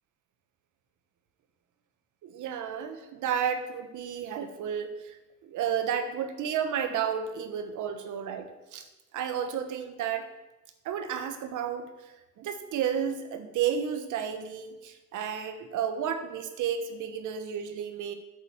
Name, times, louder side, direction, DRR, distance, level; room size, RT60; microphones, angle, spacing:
voice 1, 2.2-5.2 5.4-8.8 9.1-10.3 10.8-11.9 12.4-18.1, right 8 dB, 85° right, 8 dB, 1.3 m, -32 dB
8.6 x 7.9 x 7.5 m, 1.0 s
cardioid pair, 90°, 30 cm